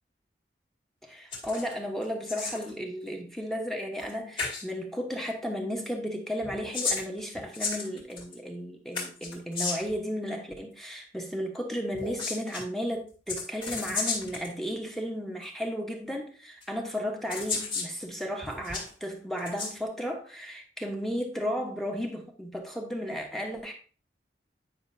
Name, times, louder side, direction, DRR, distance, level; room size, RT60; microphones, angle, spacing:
voice 1, 1.1-23.7, equal, ahead, 1.1 m, -34 dB
sound 1, 1.3-1.7 2.0-2.7 4.0-4.1 4.4-4.6 6.4-8.3 8.9-10.0 11.9-12.6 13.3-14.5 15.4-15.5 16.6-16.7 17.3-17.9 18.4-18.9 19.4-19.7, left 4 dB, 30° left, 2.0 m, -33 dB
9.5 x 5.6 x 2.7 m
head